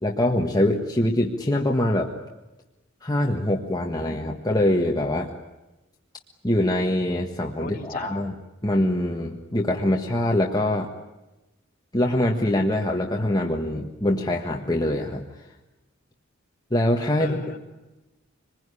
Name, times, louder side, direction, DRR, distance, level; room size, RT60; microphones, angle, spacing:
voice 1, 0.0-2.1 3.0-5.3 6.4-8.3 8.6-10.9 11.9-15.2 16.7-17.4, left 1 dB, 20° left, 0 dB, 1.6 m, -23 dB
voice 2, 7.6-8.3 17.2-17.6, left 2 dB, 45° left, 1 dB, 3.3 m, -36 dB
25.5 x 21.0 x 9.8 m, 1.0 s
head